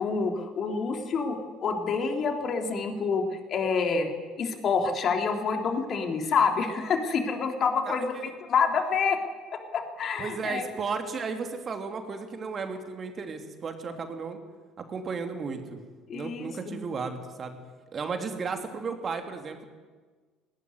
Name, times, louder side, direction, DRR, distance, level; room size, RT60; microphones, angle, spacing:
voice 1, 0.0-3.2 3.5-4.1 4.4-9.2 9.5-10.6 16.1-16.8, left 5 dB, 45° left, 4 dB, 3.5 m, -27 dB
voice 2, 7.8-8.3 10.2-14.4 14.8-15.8 16.1-17.6 17.9-19.7, right 5 dB, 35° right, 5 dB, 3.0 m, -34 dB
20.0 x 18.5 x 9.6 m, 1.4 s
figure-of-eight pair, 60°, 0 cm